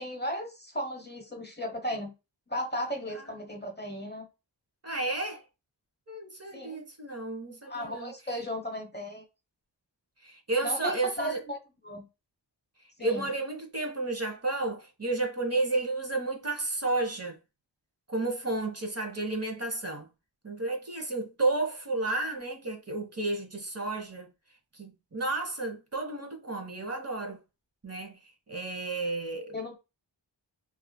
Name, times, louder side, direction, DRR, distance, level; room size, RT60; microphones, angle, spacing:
voice 1, 0.0-2.1 2.5-4.3 6.5-6.8 7.6-9.2 10.6-11.6 11.8-12.1 13.0-13.3 29.5-29.8, equal, 25° left, 0.8 m, -35 dB
voice 2, 4.8-5.4 6.1-8.1 10.2-11.4 13.0-17.4 18.1-20.1 20.4-24.3 24.8-27.4 27.8-28.2 28.5-29.5, right 2 dB, 35° right, 0.9 m, -32 dB
3.0 x 2.5 x 2.2 m
cardioid pair, 40°, 45 cm